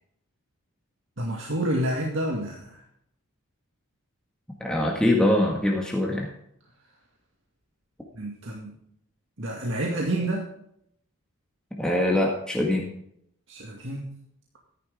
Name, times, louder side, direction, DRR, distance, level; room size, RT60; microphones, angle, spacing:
voice 1, 1.2-2.8 8.2-8.7 9.4-10.5 13.5-14.1, right 1 dB, 55° right, -1 dB, 2.3 m, -29 dB
voice 2, 4.6-6.3 11.8-12.9, left 1 dB, 5° left, -1 dB, 1.8 m, -23 dB
14.5 x 11.0 x 3.6 m, 0.71 s
head